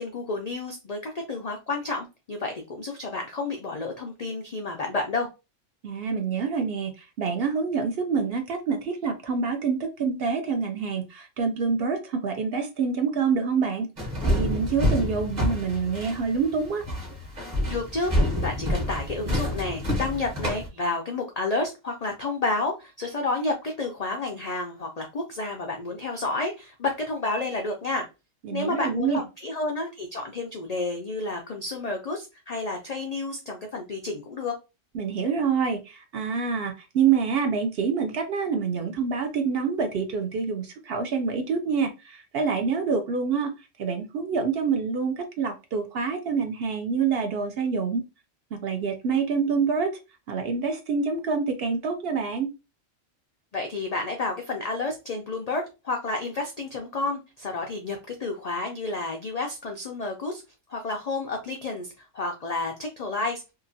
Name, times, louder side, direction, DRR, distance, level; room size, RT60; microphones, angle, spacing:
voice 1, 0.0-5.3 17.7-28.0 28.5-34.5 53.5-60.4 60.7-63.4, left 3 dB, 75° left, 2 dB, 0.3 m, -30 dB
voice 2, 5.8-16.8 28.4-29.2 34.9-48.0 48.5-50.0 50.3-52.5, right 5 dB, 65° right, 5 dB, 0.7 m, -27 dB
sound 1, 14.0-20.7, equal, 35° right, 1.1 m, -27 dB
2.8 x 2.4 x 2.6 m, 0.27 s
omnidirectional pair, 1.3 m